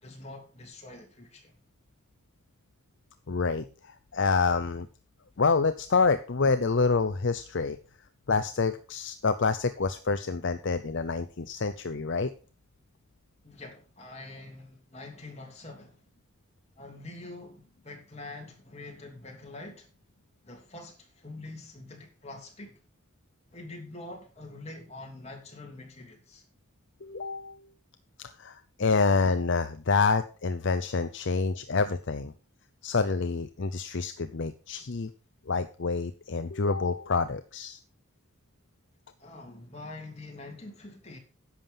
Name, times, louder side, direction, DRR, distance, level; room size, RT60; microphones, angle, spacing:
voice 1, 0.0-1.6 13.4-16.0 16.8-19.9 20.4-22.8 23.5-26.4 39.2-41.2, left 2 dB, 30° left, 3.0 m, -45 dB
voice 2, 3.3-4.9 5.4-7.8 8.3-12.3 27.0-27.6 28.2-32.3 32.8-35.1 35.5-37.8, left 4 dB, 55° left, 0.6 m, -27 dB
10.5 x 7.3 x 5.6 m
head